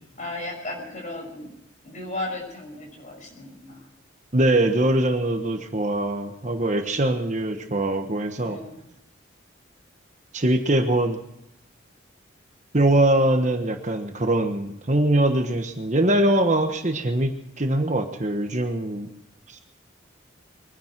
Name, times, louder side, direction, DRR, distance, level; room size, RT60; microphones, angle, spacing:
voice 1, 0.2-1.5 1.8-3.9 8.4-8.8, left 2 dB, 40° left, 2 dB, 5.7 m, -35 dB
voice 2, 4.3-8.6 10.3-11.2 12.7-19.1 19.5-19.6, right 1 dB, 35° right, 6 dB, 1.2 m, -22 dB
23.0 x 10.5 x 6.0 m, 0.85 s
head